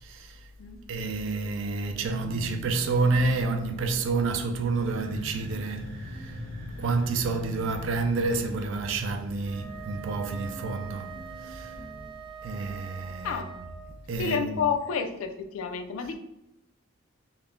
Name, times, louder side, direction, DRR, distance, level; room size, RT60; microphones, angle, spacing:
voice 1, 0.0-0.4 0.9-6.4 6.8-11.1 11.4-11.8 12.4-13.8 14.1-14.6, right 3 dB, 65° right, 0.3 m, -29 dB
sound 1, 2.1-12.1, left 1 dB, 20° left, 0.5 m, -47 dB
sound 2, 4.5-12.2, equal, 90° right, 0.8 m, -43 dB
Wind instrument woodwind instrument, 9.4-14.0, right 8 dB, 25° right, 0.7 m, -44 dB
voice 2, 14.2-16.2, left 6 dB, 75° left, 0.3 m, -30 dB
2.3 x 2.0 x 3.4 m
head